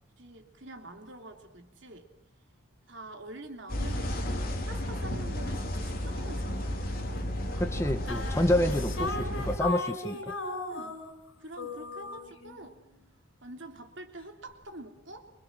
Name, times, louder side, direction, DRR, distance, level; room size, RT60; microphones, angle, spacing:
voice 1, 0.2-2.1 2.9-4.2 4.6-7.4 10.1-10.2 10.7-11.0 11.4-12.8 13.4-15.3, right 2 dB, 60° right, 4 dB, 3.2 m, -46 dB
sound 1, 3.7-9.6, left 1 dB, 45° left, 3.7 m, -33 dB
voice 2, 7.6-10.1, left 1 dB, 15° left, 6 dB, 1.1 m, -28 dB
sound 2, 8.1-11.3 11.6-12.7, left 3 dB, 65° left, 5.7 m, -36 dB
27.0 x 25.0 x 7.7 m, 0.75 s
head